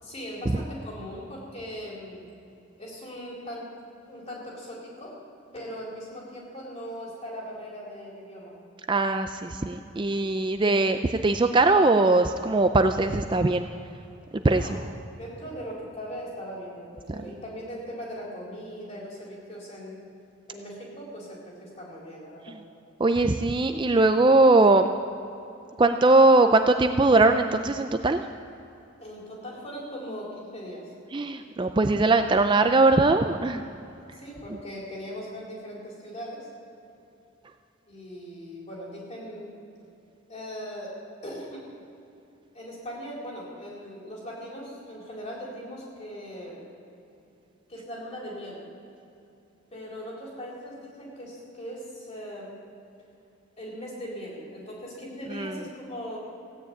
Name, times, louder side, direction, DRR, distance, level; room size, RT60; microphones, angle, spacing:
voice 1, 0.0-2.3 2.8-3.7 4.1-5.2 5.5-8.6 14.6-14.8 15.1-20.0 20.5-22.6 29.0-30.9 34.1-36.5 37.9-39.5 40.3-41.6 42.5-46.6 47.7-48.6 49.7-52.6 53.6-56.2, equal, 30° left, -4 dB, 4.2 m, -39 dB
voice 2, 8.9-13.7 14.4-14.7 23.0-24.9 25.8-28.2 31.1-33.6 55.3-55.5, right 2 dB, 25° right, 7 dB, 0.4 m, -20 dB
16.0 x 9.7 x 8.4 m, 2.8 s
head